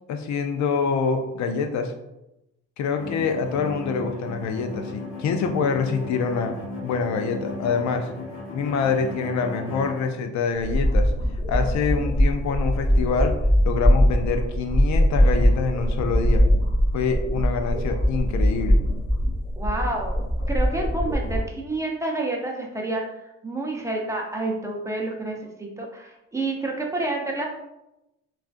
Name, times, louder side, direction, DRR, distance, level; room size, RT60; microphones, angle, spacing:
voice 1, 0.1-1.9 2.8-6.5 6.8-8.1 8.5-11.1 11.5-13.3 13.6-16.4 16.9-18.8, left 5 dB, 65° left, 6 dB, 0.5 m, -25 dB
sound 1, 3.0-10.0, left 3 dB, 50° left, 1.2 m, -35 dB
sound 2, 10.5-21.4, equal, 25° left, 1.2 m, -21 dB
voice 2, 19.6-20.2 20.5-23.0 23.4-27.5, right 2 dB, 10° right, 0 dB, 0.6 m, -29 dB
3.6 x 2.4 x 2.5 m, 0.91 s
cardioid pair, 90°, 30 cm